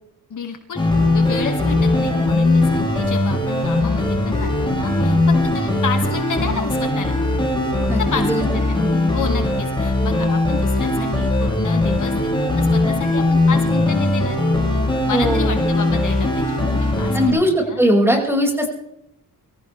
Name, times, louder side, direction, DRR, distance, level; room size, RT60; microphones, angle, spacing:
voice 1, 0.3-7.2 8.1-8.8 9.1-14.4 15.1-17.8, left 6 dB, 55° left, 4 dB, 2.1 m, -30 dB
sound 1, 0.7-17.3, left 2 dB, 15° left, 7.6 m, -19 dB
voice 2, 7.9-8.4 8.8-8.9 15.1-15.6 17.1-18.7, equal, 5° right, 0 dB, 5.8 m, -19 dB
24.5 x 15.5 x 3.4 m, 0.81 s
wide cardioid pair, 145°, 36 cm